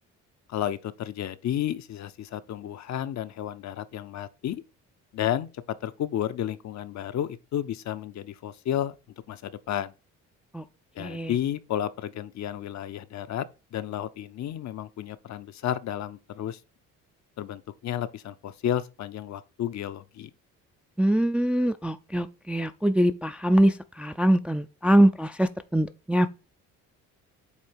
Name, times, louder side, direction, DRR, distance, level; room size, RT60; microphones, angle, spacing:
voice 1, 0.5-4.6 5.1-8.9 9.3-9.9 11.0-13.5 13.7-16.6 17.4-20.3, left 11 dB, 55° left, 0.7 m, -32 dB
voice 2, 11.0-11.3 21.0-26.3, right 1 dB, 5° right, 0.4 m, -23 dB
8.2 x 2.9 x 4.4 m
cardioid pair, 80°, 33 cm